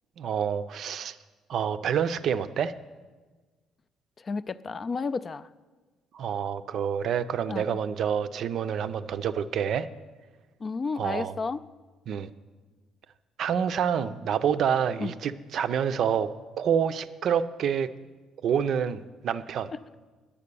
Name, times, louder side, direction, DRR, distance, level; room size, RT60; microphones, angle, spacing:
voice 1, 0.2-1.2 1.5-2.7 6.1-9.9 11.0-11.3 12.1-12.3 13.4-17.9 18.4-19.7, right 8 dB, 60° right, 11 dB, 0.5 m, -27 dB
voice 2, 4.2-5.5 7.5-7.8 10.6-11.6 15.0-15.1, left 4 dB, 30° left, 15 dB, 0.3 m, -32 dB
10.0 x 8.4 x 6.8 m, 1.3 s
cardioid pair, 115°, 0 cm